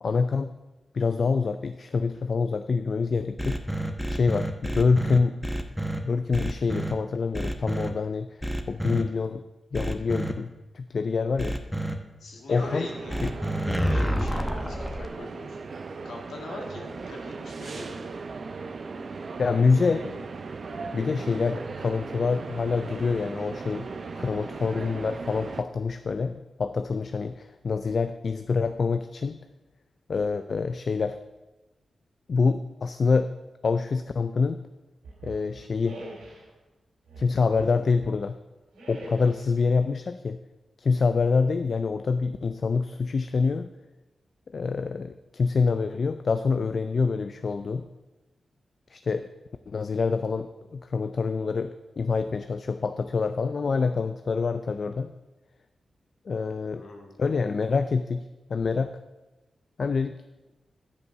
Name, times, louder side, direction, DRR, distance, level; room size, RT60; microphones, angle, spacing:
voice 1, 0.0-0.5 0.9-3.6 4.1-5.4 6.0-8.4 8.7-9.5 9.7-11.6 12.5-12.9 13.2-13.3 19.4-20.2 20.9-23.8 24.1-29.4 30.1-31.2 32.3-33.3 33.6-34.6 35.2-36.0 37.2-38.4 38.9-40.4 40.8-43.7 44.5-47.8 48.9-49.3 49.7-55.1 56.3-56.8 57.2-58.2 58.5-58.9 59.8-60.2, left 4 dB, 60° left, 10 dB, 0.3 m, -26 dB
sound 1, 3.4-6.0 6.3-6.9 7.3-7.9 8.4-9.0 9.7-10.3 11.4-11.9 13.1-15.1, right 1 dB, ahead, 1.0 m, -28 dB
voice 2, 12.2-13.2 13.6-15.6 16.0-18.0 56.7-57.1, left 2 dB, 75° left, 1 dB, 1.7 m, -41 dB
sound 2, 12.5-25.6, right 4 dB, 60° right, 0.6 m, -38 dB
sound 3, 35.0-36.5 37.1-38.2 38.7-39.6, right 1 dB, 90° right, 2.5 m, -44 dB
9.9 x 5.3 x 5.8 m, 1.1 s
supercardioid pair, 40°, 0 cm